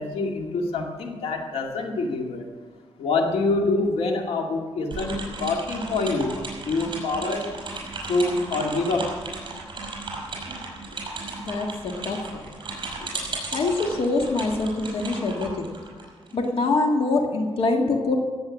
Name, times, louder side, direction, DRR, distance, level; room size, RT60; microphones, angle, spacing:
voice 1, 0.0-2.5 3.0-6.4 6.6-7.5 8.1-9.1 13.3-13.4, left 3 dB, 85° left, 2 dB, 2.2 m, -26 dB
sound 1, 4.9-16.5, right 3 dB, 50° right, 5.4 m, -35 dB
voice 2, 11.5-12.4 13.0-13.1 13.5-15.7 16.3-18.2, left 3 dB, 65° left, 3 dB, 1.8 m, -24 dB
16.5 x 8.1 x 7.3 m, 1.5 s
cardioid pair, 115°, 10 cm